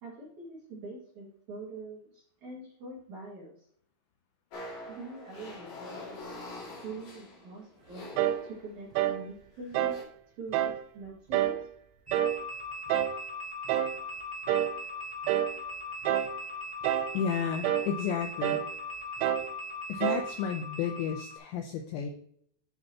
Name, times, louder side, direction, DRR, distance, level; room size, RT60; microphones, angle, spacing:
voice 1, 0.0-3.5 4.9-6.2 6.8-8.0 8.4-10.1 10.4-11.6, right 2 dB, 50° right, -5 dB, 2.5 m, -44 dB
sound 1, 4.5-9.0 9.6-10.0, left 2 dB, 45° left, 2.9 m, -45 dB
sound 2, 8.2-8.5 9.0-9.2 9.8-10.0 10.5-10.8 11.3-11.6 12.1-12.4 12.9-13.2 13.7-14.0 14.5-14.8 15.3-15.6 16.1-16.4 16.8-17.2 17.6-17.9 18.4-18.7 19.2-19.5 20.0-20.3, right 12 dB, 85° right, 3.4 m, -28 dB
sound 3, 12.1-21.4, left 2 dB, 5° right, 1.0 m, -39 dB
voice 2, 17.1-18.6 19.9-22.1, left 7 dB, 80° left, 5 dB, 2.6 m, -32 dB
11.5 x 6.6 x 2.9 m, 0.64 s
omnidirectional pair, 6.0 m